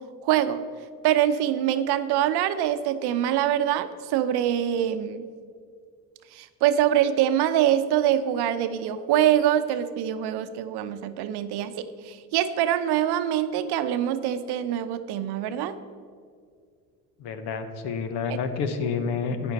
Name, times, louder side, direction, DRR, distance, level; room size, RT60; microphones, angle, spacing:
voice 1, 0.2-0.6 1.0-5.3 6.3-15.8, right 11 dB, 65° right, 11 dB, 0.7 m, -24 dB
voice 2, 17.2-19.5, left 5 dB, 70° left, 9 dB, 1.1 m, -29 dB
11.5 x 8.9 x 4.1 m, 2.1 s
supercardioid pair, 75°, 42 cm